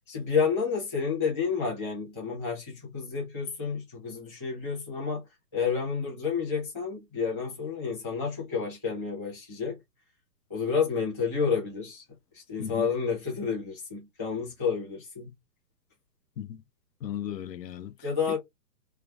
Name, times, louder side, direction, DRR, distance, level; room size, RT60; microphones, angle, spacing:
voice 1, 0.1-5.2 5.5-9.8 10.5-12.0 12.3-15.3 18.0-18.4, left 5 dB, 10° left, 0.7 m, -30 dB
voice 2, 17.0-18.1, left 10 dB, 80° left, 0.7 m, -36 dB
3.3 x 2.0 x 3.3 m
hypercardioid pair, 165°, 49 cm